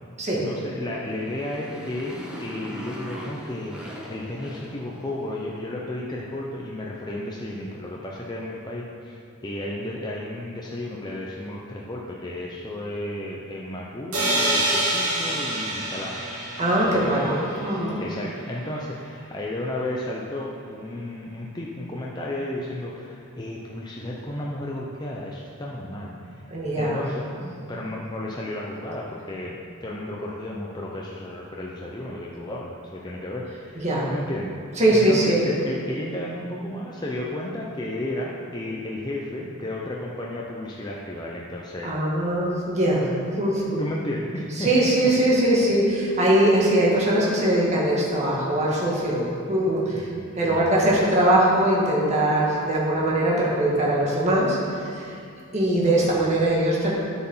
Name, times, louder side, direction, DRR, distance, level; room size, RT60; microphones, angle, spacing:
voice 1, 0.3-16.2 16.9-17.2 17.9-26.4 26.8-34.5 34.9-41.9 43.3-43.4 43.8-44.7 49.9-50.8, left 1 dB, 20° left, -3 dB, 0.8 m, -33 dB
Motorcycle, 0.9-5.4, equal, 5° right, 1.3 m, -39 dB
sound 1, 14.1-17.9, right 1 dB, 80° right, 2.8 m, -26 dB
voice 2, 16.6-17.4 17.6-18.0 26.5-27.0 33.8-34.1 34.8-35.4 41.8-43.1 43.4-43.8 44.6-49.2 49.5-55.2 55.5-56.9, right 1 dB, 30° right, -5 dB, 2.1 m, -21 dB
10.0 x 8.2 x 5.7 m, 2.4 s
head